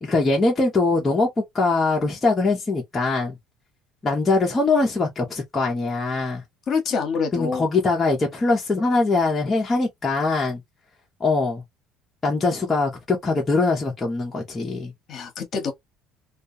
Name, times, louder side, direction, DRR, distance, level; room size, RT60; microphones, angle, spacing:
voice 1, 0.0-1.3 1.5-3.3 4.0-6.4 7.3-10.6 11.2-11.6 12.2-14.9, left 3 dB, 20° left, 0.7 m, -22 dB
voice 2, 6.7-7.6 15.1-15.7, left 5 dB, 45° left, 1.0 m, -26 dB
2.3 x 2.2 x 2.6 m
cardioid pair, 135°, 0 cm